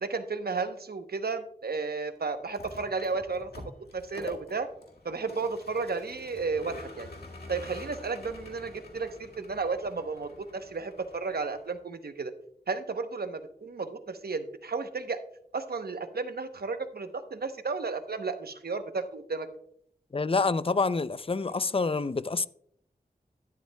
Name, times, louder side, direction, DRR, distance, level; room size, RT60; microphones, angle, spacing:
voice 1, 0.0-4.7 5.0-7.1 7.5-12.3 12.7-15.2 15.5-19.5, right 4 dB, 80° right, 0.9 m, -33 dB
Vehicle, 2.4-11.8, left 2 dB, 85° left, 1.8 m, -47 dB
voice 2, 20.1-22.5, left 4 dB, 35° left, 0.4 m, -27 dB
12.0 x 10.5 x 2.2 m
cardioid pair, 40°, 16 cm